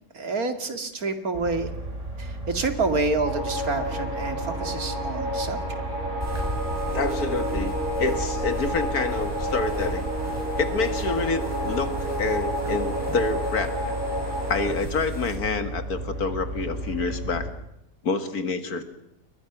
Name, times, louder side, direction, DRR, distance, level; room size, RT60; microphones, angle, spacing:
voice 1, 0.1-1.7 2.2-5.8, right 3 dB, 75° right, 7 dB, 2.7 m, -28 dB
sound 1, 1.3-17.5, right 2 dB, 50° right, 4.2 m, -34 dB
sound 2, 3.2-14.7, equal, 30° right, 6.5 m, -30 dB
sound 3, 6.2-15.4, left 1 dB, 10° right, 7.5 m, -38 dB
voice 2, 6.9-10.1 10.6-14.0 14.5-17.5 18.0-18.8, left 4 dB, 80° left, 9 dB, 2.4 m, -27 dB
30.0 x 22.5 x 6.1 m, 0.81 s
omnidirectional pair, 1.6 m